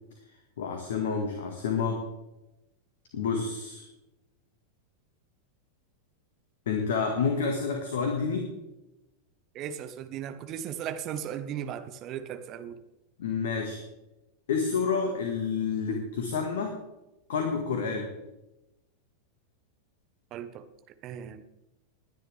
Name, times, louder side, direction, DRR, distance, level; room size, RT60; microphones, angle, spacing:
voice 1, 0.6-2.0 3.1-3.9 6.7-8.5 13.2-13.8 14.5-16.8 17.3-18.1, left 5 dB, 60° left, 4 dB, 1.9 m, -29 dB
voice 2, 9.5-12.8 20.3-20.7 21.0-21.4, right 9 dB, 35° right, 10 dB, 1.2 m, -37 dB
21.0 x 10.0 x 3.5 m, 0.94 s
figure-of-eight pair, 90°, 0 cm